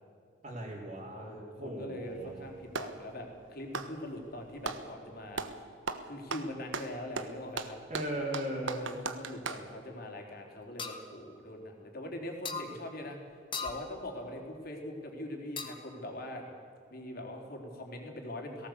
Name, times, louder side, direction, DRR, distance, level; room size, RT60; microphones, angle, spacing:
voice 1, 0.4-2.5 7.9-8.8, right 1 dB, 40° right, -7 dB, 3.6 m, -38 dB
voice 2, 1.1-5.4 6.0-7.8 8.5-13.2 13.6-16.4 16.9-18.7, left 1 dB, 50° left, 2 dB, 3.8 m, -42 dB
Clapping, 2.1-3.0 3.6-4.9 5.3-5.6 5.9-9.7, right 4 dB, 90° right, 1.3 m, -38 dB
sound 1, 10.8-11.0 12.4-12.7 13.5-13.8 15.6-15.9, left 5 dB, 25° left, 1.7 m, -37 dB
18.0 x 18.0 x 8.2 m, 2.5 s
head